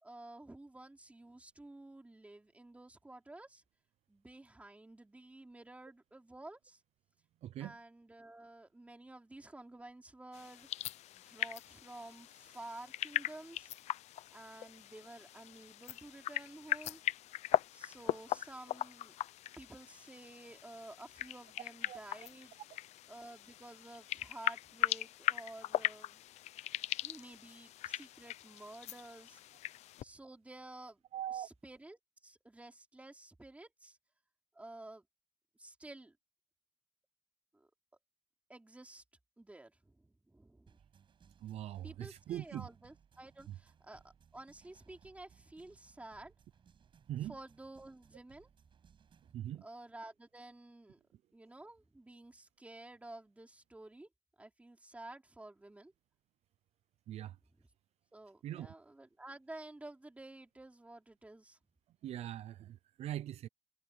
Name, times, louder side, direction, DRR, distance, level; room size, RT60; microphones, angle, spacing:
voice 1, 0.0-3.6 4.1-6.8 7.6-10.7 11.1-13.7 14.3-17.0 17.7-19.1 19.6-22.5 23.1-26.2 27.0-29.4 30.0-31.0 31.3-34.0 34.5-35.0 35.6-36.2 37.5-37.7 38.5-39.0 39.4-40.8 41.8-46.3 47.2-48.5 49.6-51.0 51.3-54.1 54.4-55.9 57.6-57.7 58.1-61.6, right 2 dB, 10° right, 3.8 m, -52 dB
voice 2, 7.4-7.8 21.8-22.3 31.1-31.5 41.4-42.7 47.1-47.3 49.3-49.6 57.1-57.4 58.4-58.7 62.0-63.5, right 12 dB, 65° right, 0.6 m, -42 dB
sound 1, 10.3-30.0, left 14 dB, 75° left, 0.7 m, -39 dB
sound 2, 40.7-49.4, right 7 dB, 45° right, 7.3 m, -65 dB
cardioid pair, 105°, 12 cm